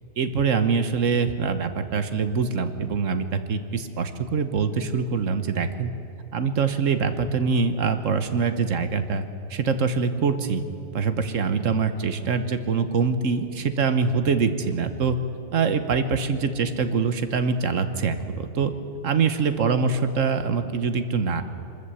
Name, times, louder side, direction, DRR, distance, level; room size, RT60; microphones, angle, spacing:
voice 1, 0.2-5.9 6.3-10.6 10.9-15.2 15.5-18.7 19.0-21.4, right 5 dB, 85° right, 10 dB, 1.5 m, -24 dB
23.5 x 13.5 x 8.3 m, 2.7 s
omnidirectional pair, 1.3 m